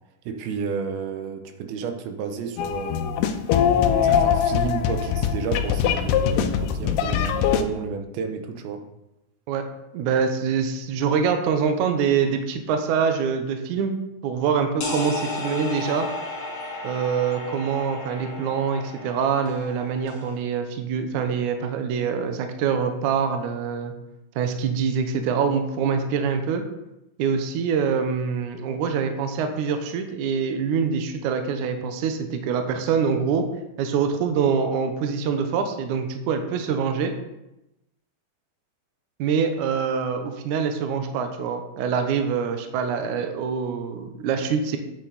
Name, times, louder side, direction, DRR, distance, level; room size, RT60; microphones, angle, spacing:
voice 1, 0.3-3.1 4.0-8.8, right 6 dB, 90° right, 5 dB, 2.8 m, -31 dB
sound 1, 2.6-7.6, left 8 dB, 80° left, 2.1 m, -22 dB
voice 2, 9.9-14.0 14.2-16.1 16.8-23.9 24.4-26.6 27.2-33.5 33.8-37.1 39.2-44.8, right 6 dB, 70° right, 6 dB, 2.0 m, -25 dB
sound 2, 14.8-20.4, left 2 dB, 45° left, 2.1 m, -34 dB
8.7 x 8.4 x 4.0 m, 0.91 s
omnidirectional pair, 4.2 m